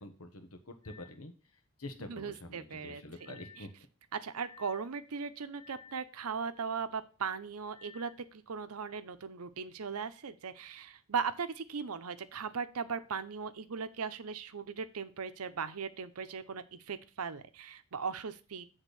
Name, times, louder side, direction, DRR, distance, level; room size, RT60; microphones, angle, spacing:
voice 1, 0.0-1.3 1.8-3.7, left 2 dB, 80° left, 6 dB, 1.4 m, -46 dB
sound 1, 0.8-1.2 3.2-3.7 4.3-4.8 5.5-6.0 7.7-8.1, left 7 dB, 5° left, 3.7 m, -55 dB
voice 2, 2.1-3.4 4.1-18.7, right 6 dB, 85° right, 11 dB, 0.7 m, -38 dB
8.2 x 3.6 x 6.8 m, 0.35 s
head